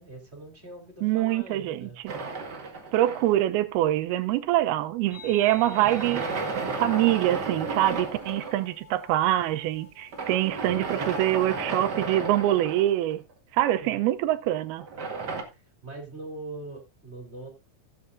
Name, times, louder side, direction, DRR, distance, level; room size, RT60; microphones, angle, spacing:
voice 1, 0.0-2.0 5.2-5.7 13.8-14.0 14.9-17.5, right 2 dB, 20° right, 2.7 m, -43 dB
voice 2, 1.0-1.9 2.9-6.3 6.8-13.2 13.5-14.9, right 14 dB, 85° right, 2.7 m, -24 dB
sound 1, 2.1-3.6 5.5-8.6 10.1-13.3 14.8-15.4, right 3 dB, 45° right, 1.3 m, -33 dB
sound 2, 5.1-11.6, left 5 dB, 55° left, 8.8 m, -51 dB
16.5 x 8.3 x 2.5 m
omnidirectional pair, 4.4 m